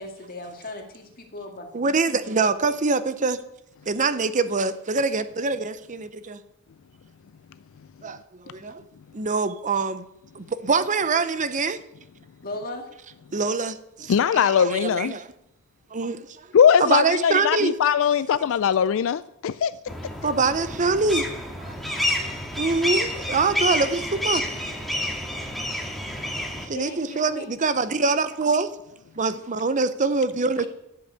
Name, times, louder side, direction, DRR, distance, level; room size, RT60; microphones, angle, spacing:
voice 1, 0.0-1.7 12.4-12.9 26.7-27.5, left 2 dB, 40° left, 2.2 m, -37 dB
voice 2, 1.7-3.4 3.9-6.4 8.0-8.2 8.4-8.8 9.1-10.0 10.3-11.8 13.3-15.3 15.9-16.5 16.8-17.8 20.2-21.3 21.6-24.4 26.6-28.7 29.2-30.7, right 4 dB, 35° right, 0.7 m, -24 dB
voice 3, 14.1-15.1 16.5-19.7, left 8 dB, 60° left, 0.4 m, -20 dB
sound 1, 19.9-26.7, left 1 dB, ahead, 1.8 m, -29 dB
11.5 x 8.0 x 8.0 m
head